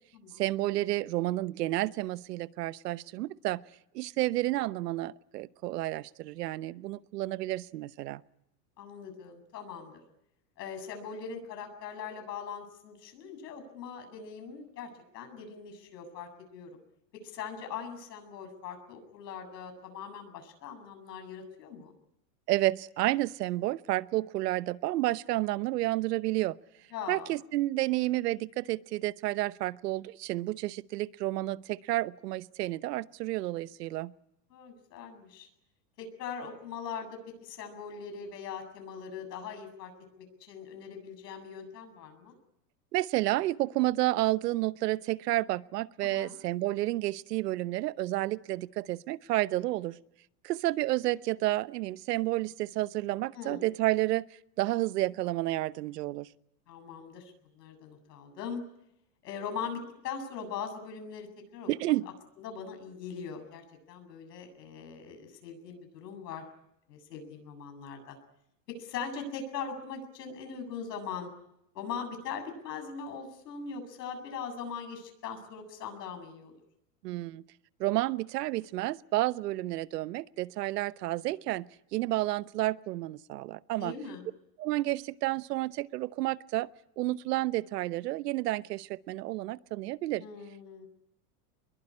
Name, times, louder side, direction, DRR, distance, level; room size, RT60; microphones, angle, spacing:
voice 1, 0.4-3.6 3.9-8.2 22.5-26.6 27.1-34.1 42.9-50.0 50.4-54.3 54.6-56.3 61.7-62.1 77.0-77.4 77.8-81.7 81.9-83.9 84.6-86.7 87.0-90.2, right 17 dB, 80° right, 16 dB, 1.0 m, -30 dB
voice 2, 8.8-10.0 10.6-16.7 17.2-21.9 26.9-27.3 34.5-35.5 36.0-37.1 37.4-39.9 40.2-42.4 46.0-46.4 53.3-53.6 56.7-58.6 59.2-61.7 62.4-66.5 66.9-68.2 68.8-71.3 71.7-76.6 83.8-84.3 90.2-90.9, left 6 dB, 90° left, 6 dB, 7.9 m, -41 dB
24.5 x 22.5 x 9.9 m, 0.80 s
supercardioid pair, 160°, 48 cm